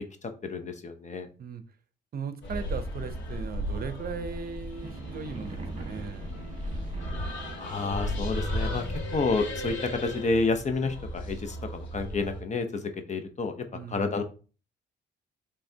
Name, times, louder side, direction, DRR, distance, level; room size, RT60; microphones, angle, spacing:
voice 1, 0.2-1.3 7.6-8.8 9.1-13.5 13.9-14.2, left 3 dB, 35° left, 0.8 m, -30 dB
voice 2, 2.1-6.3 13.7-14.2, right 6 dB, 50° right, 0.7 m, -38 dB
sound 1, 2.4-12.4, equal, 70° left, 1.8 m, -35 dB
sound 2, 4.8-8.7, right 2 dB, 35° right, 1.5 m, -42 dB
5.7 x 3.4 x 2.7 m
cardioid pair, 90°, 20 cm